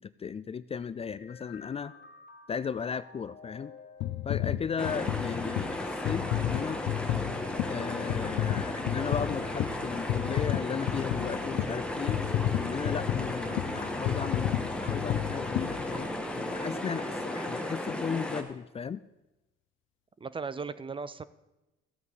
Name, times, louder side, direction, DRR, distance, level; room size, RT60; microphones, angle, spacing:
voice 1, 0.0-1.9 2.5-3.7 4.2-6.8 7.7-12.3 12.6-19.0, left 6 dB, 30° left, 16 dB, 0.4 m, -36 dB
sound 1, 1.0-17.0, left 2 dB, 55° left, 1.9 m, -52 dB
sound 2, 4.0-16.4 17.0-17.1, left 12 dB, 80° left, 0.6 m, -32 dB
sound 3, 4.8-18.4, left 1 dB, 5° left, 1.5 m, -35 dB
voice 2, 20.2-21.2, right 5 dB, 25° right, 16 dB, 0.5 m, -37 dB
15.0 x 8.2 x 4.8 m, 1.0 s
supercardioid pair, 75°, 20 cm